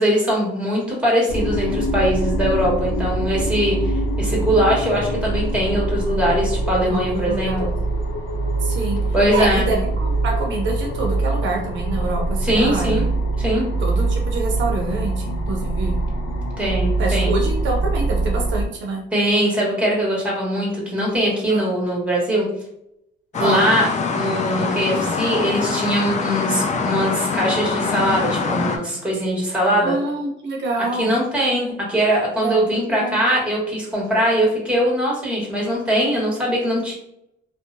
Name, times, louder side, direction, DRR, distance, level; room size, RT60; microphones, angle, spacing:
voice 1, 0.0-7.7 9.1-9.7 12.4-13.0 13.4-13.6 16.6-17.4 19.1-22.5 23.4-23.9 24.2-30.0 31.0-36.9, equal, 5° right, -3 dB, 1.3 m, -21 dB
sound 1, 1.3-18.7, right 2 dB, 85° left, 0.6 m, -23 dB
voice 2, 6.8-7.6 8.6-9.0 9.3-13.0 13.8-16.0 17.0-19.0 21.5-21.7 23.3-23.7 29.8-31.1 32.4-33.2, right 2 dB, 70° right, 1 dB, 0.6 m, -26 dB
sound 2, 23.3-28.8, left 4 dB, 35° left, 0.4 m, -24 dB
2.7 x 2.1 x 2.5 m, 0.79 s
cardioid pair, 90°, 20 cm